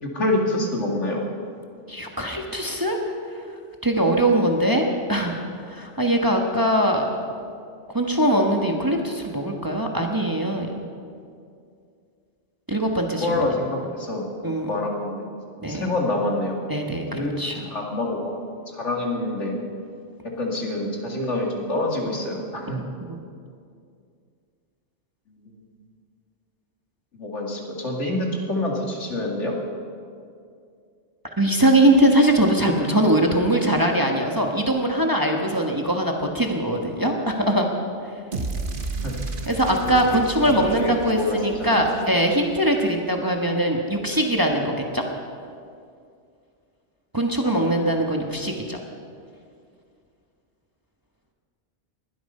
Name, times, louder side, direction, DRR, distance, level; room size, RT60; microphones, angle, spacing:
voice 1, 0.0-1.2 13.2-14.2 14.7-15.3 15.7-16.6 17.1-17.3 17.7-18.3 18.7-19.5 20.4-22.8 25.3-25.5 27.1-29.5 39.0-39.1 40.5-41.9 47.4-47.8, left 1 dB, 75° left, 0 dB, 2.6 m, -26 dB
voice 2, 1.9-3.0 3.8-7.1 7.9-10.7 12.7-13.5 14.4-14.7 15.6-15.9 16.7-17.6 23.0-23.2 31.4-37.7 39.5-45.0 47.1-48.8, right 1 dB, 20° right, 1 dB, 1.3 m, -21 dB
sound 1, 38.3-42.6, right 3 dB, 45° right, 1.3 m, -33 dB
20.5 x 12.5 x 5.5 m, 2.4 s
omnidirectional pair, 1.2 m